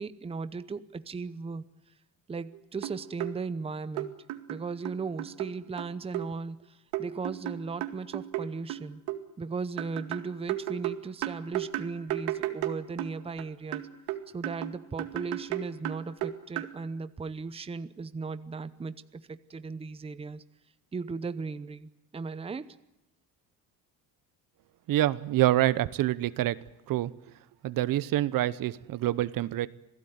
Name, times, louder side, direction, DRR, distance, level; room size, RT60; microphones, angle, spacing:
voice 1, 0.0-1.7 2.3-4.1 4.5-9.0 9.4-13.8 14.3-20.4 20.9-22.8, right 4 dB, 15° right, 13 dB, 0.8 m, -37 dB
sound 1, 2.5-2.6 2.8-3.3 4.0-5.5 5.8-6.3 6.9-9.2 9.8-13.4 13.7-16.7, right 14 dB, 85° right, 2.2 m, -34 dB
voice 2, 24.9-26.6 26.9-27.1 27.6-29.7, right 14 dB, 55° right, 16 dB, 0.9 m, -26 dB
27.0 x 17.0 x 9.4 m, 0.88 s
cardioid pair, 125°, 39 cm